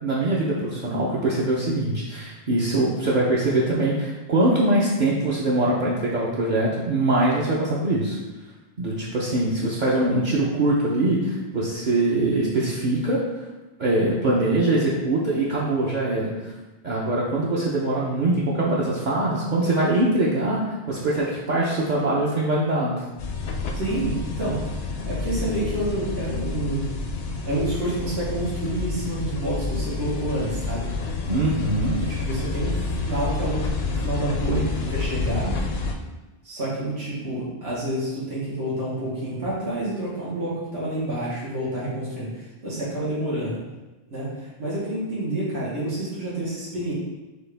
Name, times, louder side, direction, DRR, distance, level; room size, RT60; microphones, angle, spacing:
voice 1, 0.0-8.2 8.8-13.2 13.8-16.3 16.8-23.0 31.3-32.0, right 2 dB, 50° right, -6 dB, 0.8 m, -23 dB
sound 1, 23.2-35.9, left 3 dB, 75° left, 0.8 m, -29 dB
voice 2, 23.7-26.8 27.4-30.9 31.9-35.5 36.4-43.6 44.1-46.9, right 1 dB, 80° right, -8 dB, 1.5 m, -28 dB
6.2 x 2.4 x 3.3 m, 1.1 s
omnidirectional pair, 1.1 m